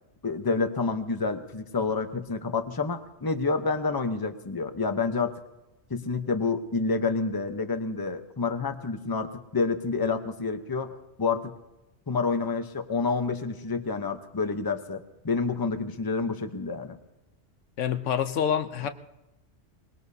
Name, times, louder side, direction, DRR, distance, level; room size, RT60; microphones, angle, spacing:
voice 1, 0.2-5.4 5.9-11.5 12.1-17.0, left 4 dB, 20° left, 7 dB, 0.8 m, -28 dB
voice 2, 17.8-18.9, left 8 dB, 85° left, 10 dB, 1.1 m, -27 dB
23.5 x 20.5 x 2.8 m, 1.0 s
omnidirectional pair, 1.2 m